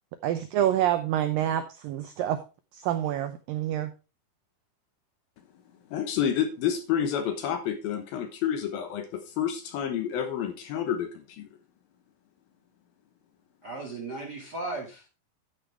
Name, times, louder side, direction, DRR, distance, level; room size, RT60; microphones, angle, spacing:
voice 1, 0.2-2.4 2.7-3.9, right 11 dB, 85° right, 2.0 m, -27 dB
voice 2, 5.9-11.5, left 9 dB, 70° left, 2.6 m, -29 dB
voice 3, 13.6-15.1, right 2 dB, 45° right, 1.2 m, -36 dB
10.5 x 9.0 x 3.3 m
omnidirectional pair, 5.0 m